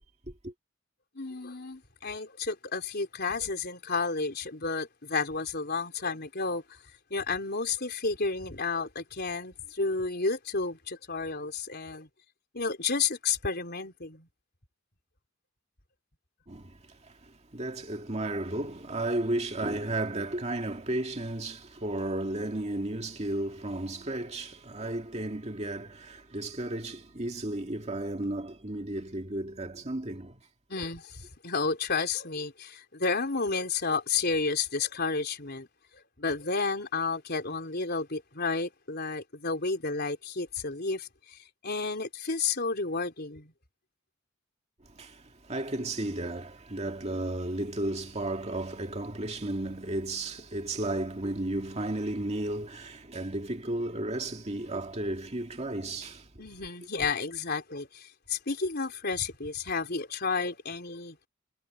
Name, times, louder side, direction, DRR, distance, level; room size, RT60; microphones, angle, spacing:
voice 1, 1.1-6.8 7.1-12.1 12.5-14.3 30.7-35.7 36.2-41.4 41.6-43.5 56.4-61.2, left 4 dB, 55° left, 4.1 m, -31 dB
voice 2, 16.5-30.4 44.9-56.3, right 1 dB, 35° right, 2.2 m, -34 dB
head